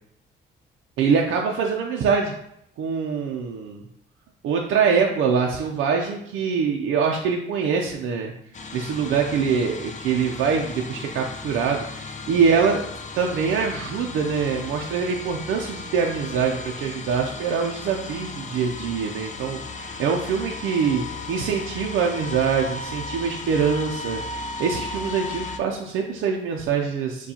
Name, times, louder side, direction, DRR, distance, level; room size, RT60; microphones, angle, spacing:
voice 1, 1.0-2.3 2.8-3.8 4.4-8.3 8.7-12.8 13.1-27.3, right 6 dB, 85° right, 1 dB, 0.5 m, -24 dB
sound 1, 8.5-25.6, left 3 dB, 40° left, 0.5 m, -36 dB
6.8 x 2.3 x 2.8 m, 0.76 s
cardioid pair, 90°, 20 cm